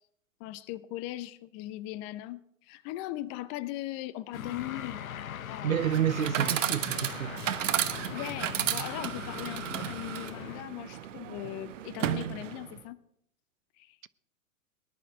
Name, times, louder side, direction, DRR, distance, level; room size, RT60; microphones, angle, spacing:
voice 1, 0.4-5.0 5.5-5.7 6.4-6.5 8.1-13.0 13.8-14.0, left 15 dB, 35° left, 0.9 m, -39 dB
sound 1, 4.3-10.6, left 9 dB, 80° left, 0.7 m, -41 dB
voice 2, 5.6-7.4 8.7-8.9, right 9 dB, 80° right, 0.7 m, -29 dB
Chatter / Coin (dropping), 5.8-12.8, right 11 dB, 65° right, 1.0 m, -33 dB
19.0 x 11.0 x 4.6 m
figure-of-eight pair, 100°, 41 cm